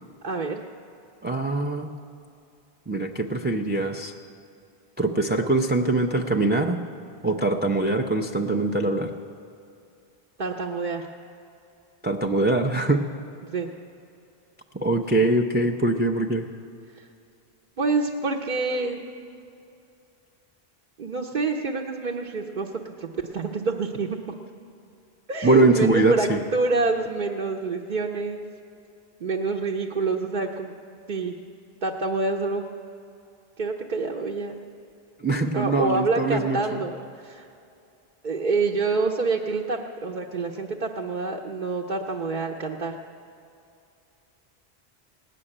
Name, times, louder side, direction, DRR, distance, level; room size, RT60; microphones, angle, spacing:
voice 1, 0.2-0.6 10.4-11.1 13.4-13.7 16.9-17.1 17.8-19.0 21.0-24.3 25.3-28.4 29.2-30.7 31.1-31.4 31.8-32.6 33.6-34.6 35.3-37.5 38.2-42.9, right 3 dB, 55° right, 0 dB, 0.8 m, -27 dB
voice 2, 1.2-1.9 2.9-4.1 5.0-6.8 7.2-9.1 12.0-13.0 14.8-16.5 25.4-26.4 35.2-36.8, right 2 dB, 15° right, 5 dB, 0.4 m, -23 dB
17.5 x 6.6 x 9.8 m, 2.6 s
omnidirectional pair, 1.1 m